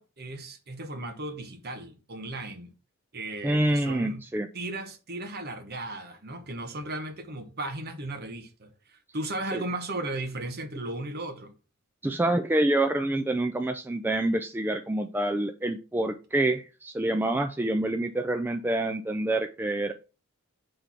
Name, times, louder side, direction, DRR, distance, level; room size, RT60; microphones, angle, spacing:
voice 1, 0.0-2.7 3.1-4.2 4.5-11.5, right 2 dB, 45° right, 1.0 m, -36 dB
voice 2, 3.4-4.5 9.5-9.6 12.0-19.9, right 1 dB, 10° right, 0.3 m, -27 dB
6.0 x 3.3 x 5.7 m
head